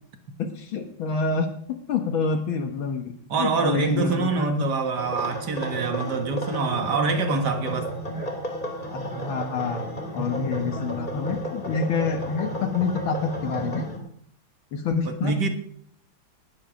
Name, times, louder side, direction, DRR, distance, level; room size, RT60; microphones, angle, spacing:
voice 1, 0.4-3.1 3.4-4.7 8.9-9.9 10.1-13.9 14.7-15.4, left 5 dB, 75° left, 5 dB, 2.0 m, -27 dB
voice 2, 3.3-7.9 10.2-10.3 15.1-15.5, right 4 dB, 55° right, 6 dB, 2.1 m, -25 dB
sound 1, 5.0-14.0, right 1 dB, 20° left, 2.7 m, -33 dB
19.0 x 7.7 x 6.3 m, 0.65 s
omnidirectional pair, 2.2 m